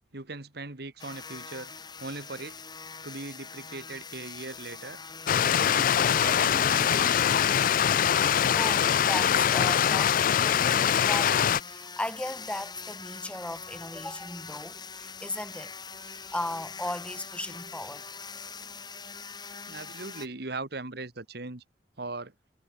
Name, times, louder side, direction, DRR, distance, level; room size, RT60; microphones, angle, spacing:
voice 1, 0.1-1.7 2.0-2.6 3.0-5.0 5.4-7.2 19.7-21.6 22.0-22.3, right 3 dB, 65° right, 2.0 m, -39 dB
sound 1, 1.0-20.3, left 5 dB, 25° left, 2.3 m, -43 dB
Stream, 5.3-11.6, left 9 dB, 50° left, 0.4 m, -23 dB
voice 2, 8.5-15.7 16.0-18.0, left 1 dB, 5° left, 0.8 m, -36 dB
head